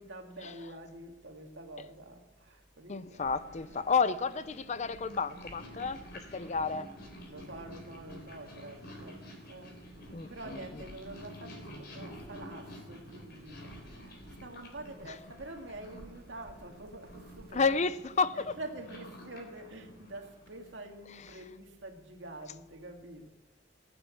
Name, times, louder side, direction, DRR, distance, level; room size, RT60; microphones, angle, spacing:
voice 1, 0.0-3.3 7.3-9.7 10.3-18.0 18.3-23.3, right 2 dB, 75° right, 2.2 m, -47 dB
voice 2, 2.9-6.0 6.3-6.9 10.1-10.6 17.5-18.6, left 5 dB, 40° left, 0.5 m, -31 dB
Purr, 3.2-20.9, equal, 60° left, 3.8 m, -50 dB
sound 1, 3.2-18.3, right 1 dB, 55° right, 1.0 m, -57 dB
18.0 x 8.8 x 8.5 m
head